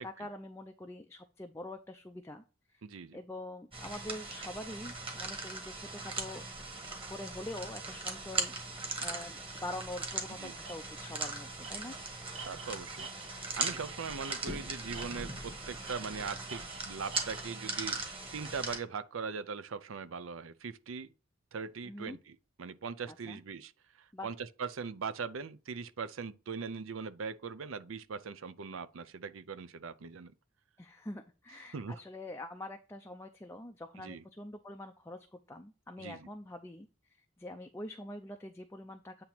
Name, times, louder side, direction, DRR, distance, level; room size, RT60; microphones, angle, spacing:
voice 1, 0.0-2.4 2.7-2.8 3.1-6.5 7.1-11.9 21.8-22.2 23.1-23.4 24.1-24.3 30.8-36.9 37.4-39.2, left 1 dB, 10° left, 0.4 m, -45 dB
voice 2, 2.8-3.2 10.4-10.6 12.4-13.1 13.5-21.1 21.5-30.3 31.7-32.0 34.0-34.2 36.0-36.3, right 5 dB, 70° right, 0.6 m, -41 dB
sound 1, 3.7-18.8, right 3 dB, 25° right, 1.6 m, -39 dB
Tools, 10.1-10.2 10.6-10.7 11.1-11.3 11.6-14.7 14.9-15.5 15.8-17.5, right 4 dB, 90° right, 1.5 m, -48 dB
8.7 x 2.9 x 5.9 m
head